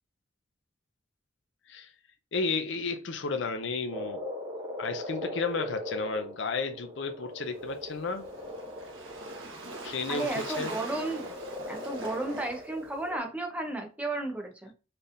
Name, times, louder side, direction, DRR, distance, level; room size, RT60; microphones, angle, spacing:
voice 1, 2.3-4.2 4.8-8.3 9.8-10.8, left 4 dB, 65° left, 0.6 m, -32 dB
Frog, 3.9-9.8 10.6-13.2, left 1 dB, 25° right, 1.6 m, -40 dB
Waves surf, 7.4-13.1, right 2 dB, 80° right, 1.3 m, -43 dB
voice 2, 10.1-11.2 11.7-14.7, right 2 dB, 5° right, 0.8 m, -33 dB
4.3 x 3.4 x 2.5 m
head